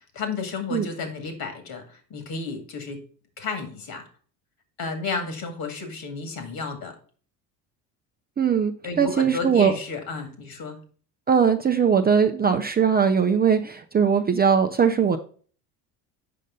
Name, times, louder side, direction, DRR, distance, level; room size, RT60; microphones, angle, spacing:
voice 1, 0.1-3.0 3.4-4.0 4.8-7.0 8.8-10.8, left 4 dB, 50° left, 7 dB, 2.1 m, -32 dB
voice 2, 8.4-8.7 9.0-9.7 11.3-15.2, right 7 dB, 20° right, 6 dB, 0.5 m, -20 dB
6.6 x 5.3 x 3.7 m, 0.42 s
hypercardioid pair, 75°, 45 cm